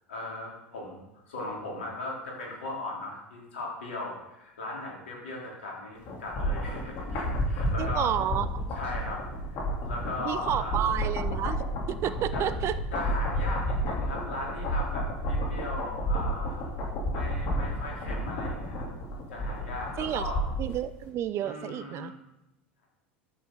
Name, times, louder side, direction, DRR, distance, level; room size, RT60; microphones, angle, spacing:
voice 1, 0.1-1.0 1.2-8.1 8.7-10.9 12.3-12.5 12.9-16.6 17.1-18.9 19.3-20.4 21.4-22.1, left 2 dB, 85° left, -2 dB, 3.5 m, -38 dB
sound 1, 6.1-20.7 21.0-21.1, equal, 55° left, 3.2 m, -31 dB
voice 2, 7.8-8.6 10.2-11.6 11.9-12.7 20.0-20.3 20.6-22.1, right 11 dB, 45° right, 14 dB, 0.6 m, -30 dB
11.0 x 8.6 x 3.9 m, 0.89 s
hypercardioid pair, 85°, 6 cm